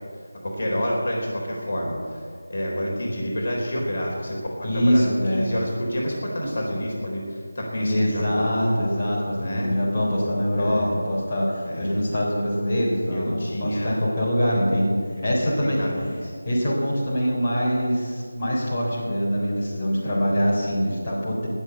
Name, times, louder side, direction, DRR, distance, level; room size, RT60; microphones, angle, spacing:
voice 1, 0.0-8.9 9.4-9.8 10.6-10.9 11.7-12.0 13.1-14.1 15.2-16.3 20.0-20.3, equal, 50° left, -2 dB, 3.7 m, -29 dB
voice 2, 4.6-5.5 7.8-13.3 13.6-15.0 15.2-15.8 16.5-21.5, equal, 25° left, -6 dB, 3.8 m, -24 dB
19.5 x 6.9 x 8.0 m, 2.3 s
figure-of-eight pair, 165°, 0 cm